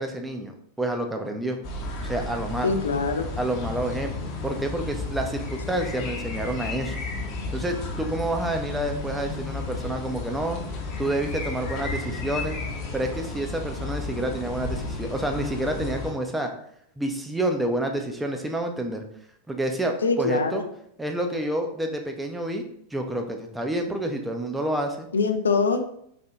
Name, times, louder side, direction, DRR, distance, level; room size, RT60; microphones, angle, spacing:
voice 1, 0.0-1.6 2.0-2.7 3.4-7.0 7.5-10.6 11.0-12.6 12.9-16.5 17.0-19.0 19.5-20.6 21.0-22.6 22.9-25.1, right 1 dB, 5° right, 4 dB, 0.5 m, -28 dB
sound 1, 1.6-16.1, left 3 dB, 40° left, 0.7 m, -33 dB
voice 2, 2.6-3.3 20.0-20.7 25.1-25.8, left 4 dB, 70° left, 7 dB, 0.3 m, -23 dB
4.1 x 2.8 x 2.3 m, 0.70 s
figure-of-eight pair, 90°, 0 cm